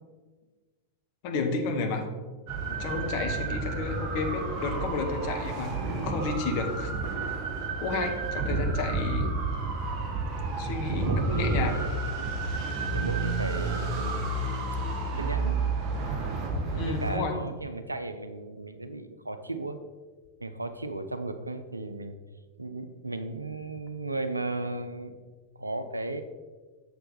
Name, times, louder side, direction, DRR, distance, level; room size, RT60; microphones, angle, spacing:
voice 1, 1.2-2.1 2.7-5.7 6.0-6.9 7.8-9.3 10.6-11.8 16.7-17.3, left 3 dB, 45° left, 3 dB, 1.1 m, -31 dB
sound 1, 2.5-17.2, right 3 dB, 35° right, 1.4 m, -30 dB
voice 2, 3.6-3.9 8.4-8.8 9.9-10.0 10.9-12.4 12.9-14.4 14.7-14.8 15.2-15.7 16.6-19.8 20.4-22.2 22.6-25.1 25.6-26.2, right 2 dB, 85° right, 9 dB, 0.5 m, -36 dB
6.7 x 6.7 x 4.0 m, 1.3 s
figure-of-eight pair, 90°, 0 cm